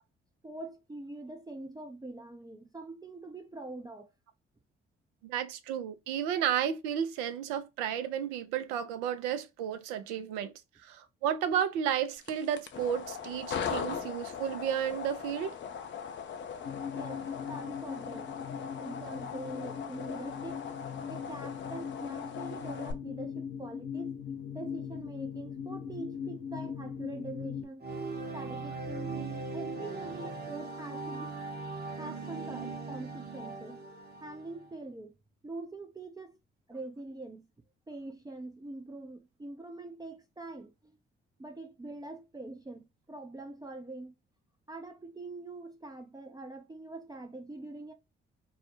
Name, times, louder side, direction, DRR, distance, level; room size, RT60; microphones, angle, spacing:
voice 1, 0.4-4.1 16.9-18.4 18.7-20.6 21.1-24.2 24.5-27.9 28.3-31.4 31.9-33.8 34.2-35.1 35.4-36.4 36.7-37.5 37.9-40.9 41.4-44.1 44.7-47.9, right 2 dB, 10° right, 0.5 m, -44 dB
voice 2, 5.2-10.5 10.9-15.5, right 9 dB, 70° right, 0.5 m, -32 dB
sound 1, 12.2-22.9, left 7 dB, 40° left, 0.5 m, -40 dB
sound 2, 16.6-27.6, left 7 dB, 65° left, 0.8 m, -40 dB
sound 3, 27.8-34.7, right 3 dB, 30° right, 0.9 m, -39 dB
2.3 x 2.0 x 2.9 m
hypercardioid pair, 45°, 31 cm